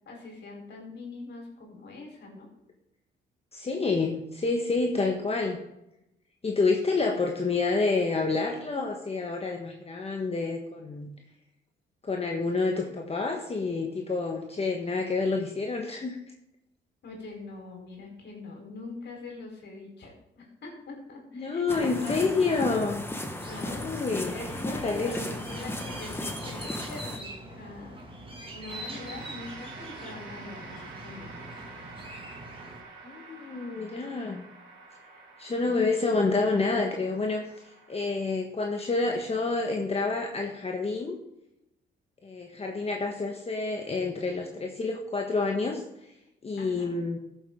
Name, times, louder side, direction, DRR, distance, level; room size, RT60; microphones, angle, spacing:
voice 1, 0.0-2.5 17.0-22.7 23.5-24.0 24.3-28.0 28.5-31.5 46.6-46.9, left 3 dB, 60° left, 0 dB, 4.1 m, -43 dB
voice 2, 3.5-5.6 6.4-11.1 12.0-16.2 21.3-23.0 23.6-24.3 24.6-25.1 33.0-34.4 35.4-41.2 42.2-46.1 46.4-47.2, left 3 dB, 30° left, 1 dB, 1.5 m, -28 dB
sound 1, 21.7-27.2, left 1 dB, 10° left, 1.6 m, -36 dB
sound 2, 23.4-32.8, right 1 dB, 25° right, 2.3 m, -44 dB
sound 3, 28.7-38.0, right 3 dB, 90° right, 3.0 m, -47 dB
13.5 x 7.4 x 3.8 m, 0.86 s
cardioid pair, 90°, 20 cm